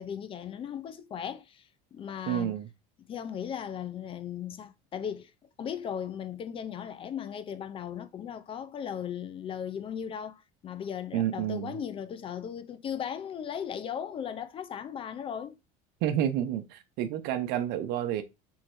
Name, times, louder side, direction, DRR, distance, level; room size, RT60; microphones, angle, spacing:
voice 1, 0.0-2.6 3.1-5.3 5.6-15.6, left 8 dB, 30° left, 0.4 m, -37 dB
voice 2, 2.3-2.7 11.1-11.8 16.0-18.2, right 11 dB, 65° right, 0.8 m, -29 dB
3.6 x 3.2 x 4.5 m
cardioid pair, 130°, 18 cm